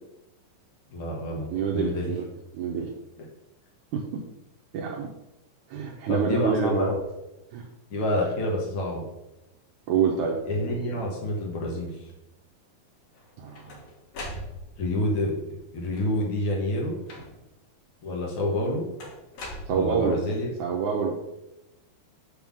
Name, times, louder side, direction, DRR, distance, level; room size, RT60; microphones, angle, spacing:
voice 1, 0.9-1.5 1.7-2.1 6.1-7.0 7.9-9.0 10.4-12.1 14.8-16.9 18.0-18.8 19.7-20.5, left 1 dB, 85° left, -2 dB, 1.1 m, -28 dB
voice 2, 1.5-2.3 2.5-2.9 3.9-4.2 4.7-5.1 5.7-6.9 7.5-7.7 9.9-10.4 13.4-13.8 19.7-20.2 20.6-21.1, right 6 dB, 85° right, 0 dB, 1.7 m, -26 dB
sound 1, 13.1-15.0 15.8-16.4 17.1-17.6 19.0-20.3, left 1 dB, 60° left, 2.4 m, -41 dB
8.3 x 3.7 x 6.0 m, 0.93 s
omnidirectional pair, 4.5 m